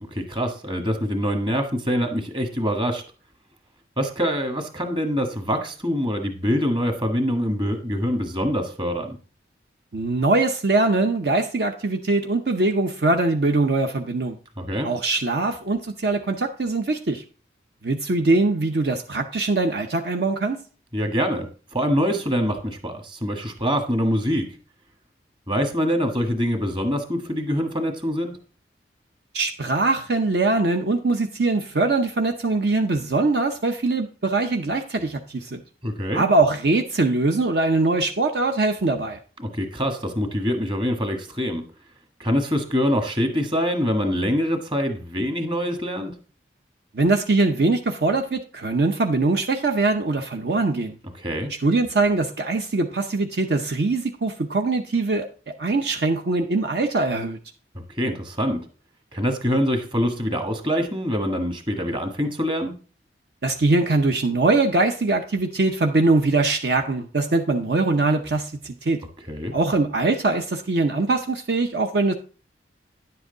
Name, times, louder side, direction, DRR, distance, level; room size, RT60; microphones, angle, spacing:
voice 1, 0.1-3.0 4.0-9.2 14.6-14.9 20.9-21.5 21.7-24.4 25.5-28.3 35.8-36.2 39.4-41.6 42.2-46.1 51.2-51.5 57.9-58.6 59.1-62.7 69.3-69.5, equal, 25° right, 5 dB, 1.5 m, -24 dB
voice 2, 9.9-14.4 14.8-17.2 17.8-20.6 29.3-35.6 36.1-39.2 46.9-51.0 51.6-55.3 55.6-57.4 63.4-69.0 69.5-72.1, right 3 dB, 60° right, 5 dB, 0.7 m, -22 dB
10.5 x 7.7 x 3.9 m, 0.38 s
head